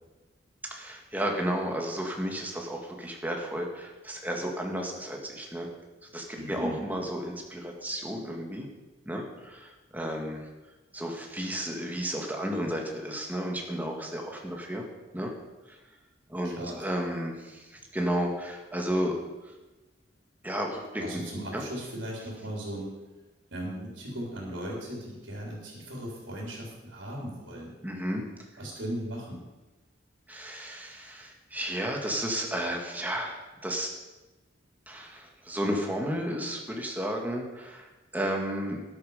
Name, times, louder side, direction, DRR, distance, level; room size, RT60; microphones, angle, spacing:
voice 1, 0.7-5.7 6.1-8.7 9.1-10.5 10.9-14.8 15.1-15.3 15.7-15.8 16.3-19.2 20.4-21.2 21.5-21.6 27.8-28.2 30.3-33.9 34.9-38.8, equal, 10° right, 1 dB, 1.9 m, -33 dB
voice 2, 6.4-6.8 16.4-16.8 21.0-22.9 23.5-27.8 28.6-29.4, equal, 85° right, -2 dB, 3.7 m, -37 dB
13.0 x 10.5 x 5.0 m, 1.2 s
head